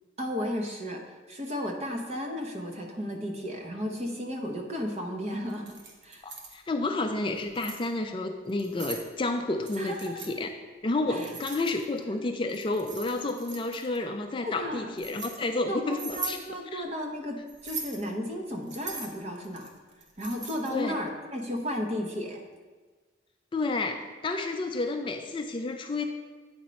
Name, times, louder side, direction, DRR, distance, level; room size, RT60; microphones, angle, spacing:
voice 1, 0.2-1.0 1.3-5.8 6.0-6.3 9.8-10.2 11.1-11.3 14.4-14.9 15.7-19.7 20.2-22.4, equal, 35° right, 2 dB, 0.9 m, -34 dB
Keys jangling, 5.5-6.6 7.3-7.9 8.5-9.1 9.6-10.3 11.2-12.0 12.5-14.0 14.6-15.4 15.9-16.4 17.5-18.0 18.7-20.8, right 4 dB, 75° right, 1.1 m, -40 dB
voice 2, 6.2-10.5 10.8-16.4 16.7-16.9 20.7-20.9 23.5-26.1, left 2 dB, 25° left, 5 dB, 0.4 m, -30 dB
8.8 x 4.4 x 5.1 m, 1.4 s
head